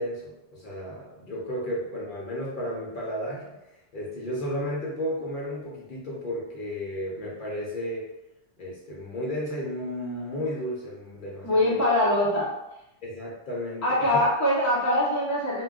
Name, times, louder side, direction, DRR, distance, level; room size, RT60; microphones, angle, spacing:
voice 1, 0.0-8.1 8.6-11.8 13.0-13.8 14.1-14.2, equal, 55° left, -4 dB, 0.8 m, -33 dB
voice 2, 11.4-12.5 13.8-15.6, left 1 dB, 20° left, -6 dB, 0.6 m, -23 dB
2.2 x 2.2 x 3.5 m, 0.93 s
omnidirectional pair, 1.1 m